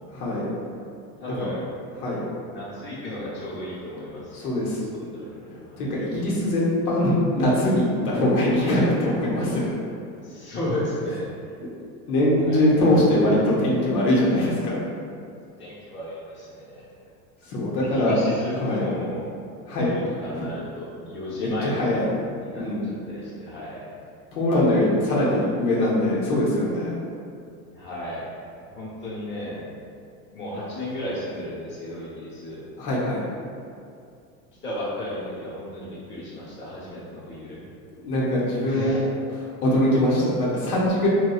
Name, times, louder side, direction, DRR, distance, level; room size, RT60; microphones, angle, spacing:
voice 1, 0.1-0.5 1.3-1.4 1.9-2.2 4.3-4.8 5.8-9.8 12.1-14.8 17.4-18.2 18.6-18.9 19.7-19.9 20.3-20.5 21.3-22.1 22.6-22.9 24.3-26.9 32.8-33.2 38.0-39.0 39.3-41.1, left 1 dB, 85° left, -6 dB, 0.8 m, -22 dB
voice 2, 1.2-1.6 2.4-4.5 5.1-5.8 10.2-11.3 12.4-12.7 15.6-16.8 17.8-19.2 19.8-22.0 22.4-23.9 27.7-28.3 28.7-29.7 30.3-32.7 34.6-37.6 38.6-39.0, left 1 dB, 25° left, -8 dB, 0.9 m, -34 dB
2.9 x 2.2 x 2.2 m, 2.4 s
supercardioid pair, 100°, 44 cm